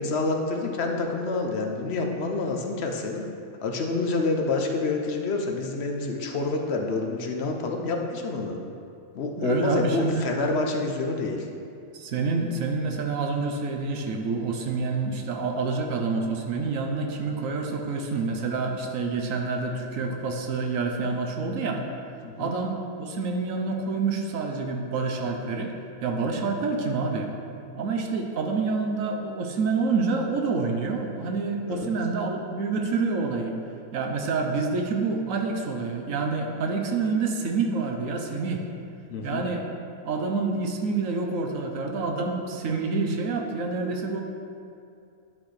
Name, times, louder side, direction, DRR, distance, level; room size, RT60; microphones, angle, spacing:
voice 1, 0.0-3.3 3.6-8.6 9.1-11.5 22.2-22.5 31.7-31.9 39.1-39.5, left 3 dB, 55° left, 2 dB, 0.9 m, -27 dB
voice 2, 9.4-10.2 11.9-21.8 22.4-25.7 26.0-27.3 27.7-33.6 33.9-38.6 39.2-39.7 40.0-44.2, right 4 dB, 70° right, 3 dB, 1.1 m, -27 dB
10.5 x 6.2 x 3.2 m, 2.5 s
omnidirectional pair, 1.5 m